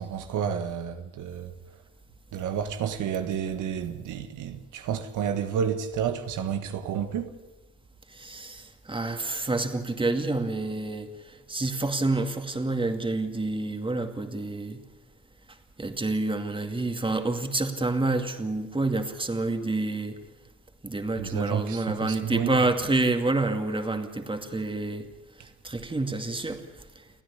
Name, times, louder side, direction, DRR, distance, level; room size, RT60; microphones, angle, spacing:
voice 1, 0.0-1.5 2.3-7.3 21.2-22.6, right 8 dB, 80° right, 1.5 m, -30 dB
voice 2, 8.1-14.8 15.8-20.2 20.8-25.1 25.6-26.6 27.0-27.1, right 2 dB, 15° right, 2.3 m, -28 dB
29.5 x 10.0 x 10.0 m
cardioid pair, 90°, 30 cm